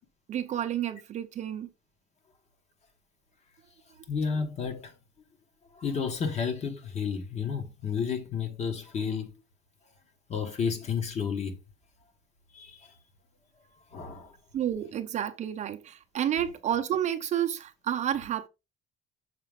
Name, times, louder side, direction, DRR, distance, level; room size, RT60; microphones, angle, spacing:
voice 1, 0.3-1.7 14.5-18.5, right 10 dB, 35° right, 0.6 m, -30 dB
voice 2, 4.1-4.9 5.7-9.3 10.3-11.6 12.5-13.0 13.9-14.4, left 6 dB, 35° left, 1.2 m, -31 dB
6.6 x 5.1 x 3.5 m
cardioid pair, 170°, 20 cm